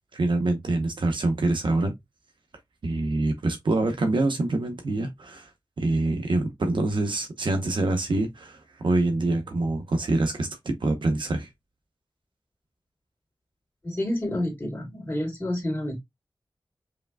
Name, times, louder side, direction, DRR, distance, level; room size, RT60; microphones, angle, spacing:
voice 1, 0.1-1.9 2.8-5.5 5.8-11.5, right 2 dB, 80° right, 0.9 m, -25 dB
voice 2, 13.8-16.0, left 1 dB, 25° left, 2.6 m, -29 dB
5.1 x 3.2 x 2.3 m
wide cardioid pair, 65°, 8 cm